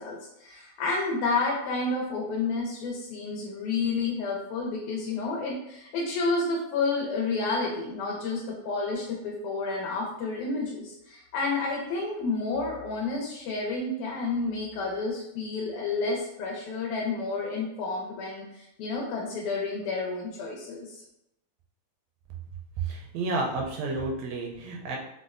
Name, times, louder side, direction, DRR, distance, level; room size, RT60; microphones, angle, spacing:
voice 1, 0.0-21.0, left 3 dB, 85° left, -1 dB, 2.0 m, -30 dB
voice 2, 22.8-25.0, right 3 dB, 80° right, 0 dB, 1.7 m, -31 dB
4.9 x 2.0 x 2.4 m, 0.82 s
omnidirectional pair, 3.3 m